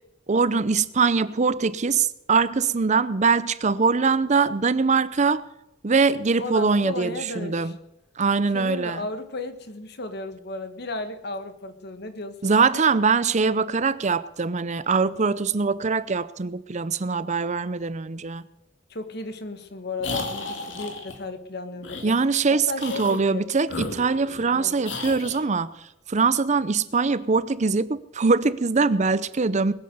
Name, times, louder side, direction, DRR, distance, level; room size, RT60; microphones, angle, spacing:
voice 1, 0.3-5.4 5.8-7.7 8.2-9.1 12.4-18.4 22.0-25.7 26.1-29.7, right 4 dB, 40° right, 0.6 m, -22 dB
voice 2, 6.4-7.7 8.5-12.8 18.9-22.1 22.5-23.5 24.5-24.8, left 2 dB, 60° left, 1.6 m, -34 dB
sound 1, 20.0-21.2 21.8-22.1 22.7-23.2 23.6-24.5 24.8-25.4, left 3 dB, 85° left, 2.5 m, -33 dB
21.0 x 8.2 x 6.7 m
head